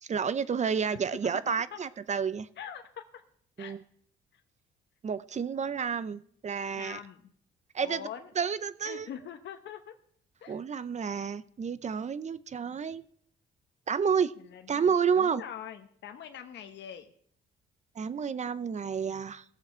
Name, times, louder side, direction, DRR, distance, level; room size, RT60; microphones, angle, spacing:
voice 1, 0.0-2.5 3.6-3.8 5.0-7.0 7.7-8.0 8.4-9.1 10.5-13.0 13.9-14.3 14.7-15.4 18.0-19.4, right 6 dB, 35° right, 16 dB, 0.6 m, -30 dB
voice 2, 2.6-3.2 3.6-3.8 4.3-4.4 6.7-7.3 7.8-8.3 8.8-9.9 10.4-10.6 14.5-17.1, left 9 dB, 65° left, 6 dB, 1.0 m, -43 dB
18.0 x 7.0 x 4.4 m, 0.63 s
cardioid pair, 90°, 20 cm